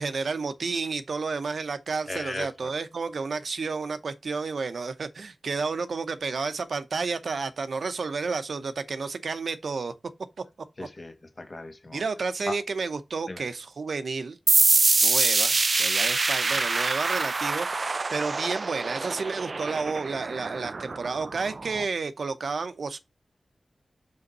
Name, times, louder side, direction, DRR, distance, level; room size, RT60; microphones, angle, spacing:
voice 1, 0.0-9.9 10.8-10.9 11.9-14.4 15.0-23.0, right 4 dB, 85° right, 0.8 m, -31 dB
voice 2, 2.1-2.7 10.8-12.0 12.5-12.6 13.3-13.4, left 2 dB, 45° left, 1.8 m, -37 dB
sound 1, 14.5-21.8, right 3 dB, 55° right, 0.3 m, -25 dB
5.7 x 5.2 x 4.1 m
cardioid pair, 55°, 0 cm